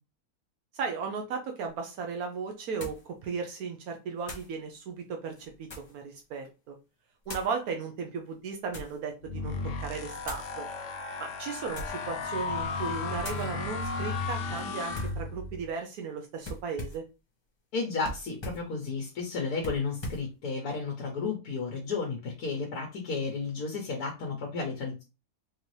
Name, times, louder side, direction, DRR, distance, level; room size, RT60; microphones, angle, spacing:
voice 1, 0.7-6.8 7.3-9.6 9.8-10.7 11.2-17.0, right 5 dB, 80° right, 4 dB, 1.1 m, -36 dB
sound 1, 1.7-1.8 2.8-3.1 4.2-4.5 5.3-6.0 7.2-7.6 8.3-9.0 10.2-10.5 11.6-12.1 12.5-12.8 13.2-13.5 14.9-15.2 16.4-17.1 18.0-18.7 19.6-20.3, left 1 dB, 25° left, 0.7 m, -41 dB
sound 2, 9.2-15.7, left 4 dB, 60° left, 1.0 m, -34 dB
voice 2, 17.7-25.0, left 4 dB, 90° left, 1 dB, 1.4 m, -33 dB
4.4 x 2.6 x 3.2 m, 0.29 s
omnidirectional pair, 1.6 m